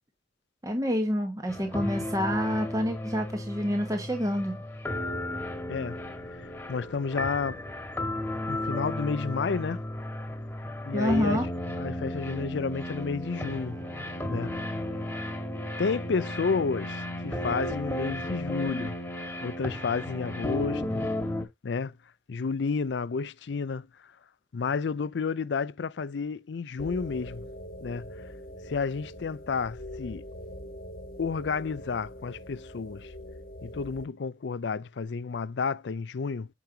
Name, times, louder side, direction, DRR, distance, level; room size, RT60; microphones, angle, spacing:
voice 1, 0.6-4.6 10.9-11.5, equal, 20° right, 1.2 m, -28 dB
sound 1, 1.5-21.4, left 1 dB, 10° left, 1.6 m, -34 dB
voice 2, 6.4-7.6 8.5-9.8 10.8-11.4 11.8-13.8 14.3-14.6 15.8-18.9 19.4-21.0 21.6-21.9 22.3-23.9 24.5-27.4 27.8-28.1 28.7-30.2 31.2-33.1 33.6-36.5, left 5 dB, 70° left, 0.5 m, -31 dB
sound 2, 26.8-34.1, left 1 dB, 55° left, 1.3 m, -43 dB
9.1 x 5.2 x 2.8 m
head